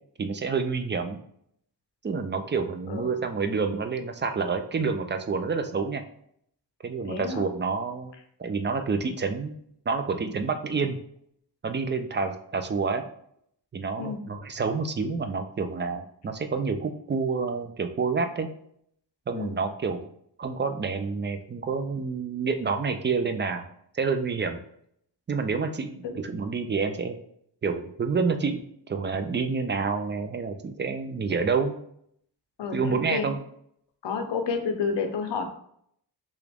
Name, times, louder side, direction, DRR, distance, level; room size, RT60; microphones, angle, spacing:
voice 1, 0.2-1.2 2.0-6.0 6.8-8.1 8.4-9.6 9.9-11.0 11.6-13.1 13.7-18.5 19.3-20.1 20.4-23.6 23.9-24.6 25.3-27.2 27.6-28.6 28.9-31.8 32.7-33.4, right 4 dB, 25° right, 7 dB, 0.4 m, -28 dB
voice 2, 7.1-7.4 14.0-14.2 19.3-19.6 26.0-26.2 32.6-33.3 34.0-35.4, left 5 dB, 70° left, 6 dB, 0.7 m, -30 dB
2.9 x 2.5 x 3.3 m, 0.68 s
cardioid pair, 65°, 44 cm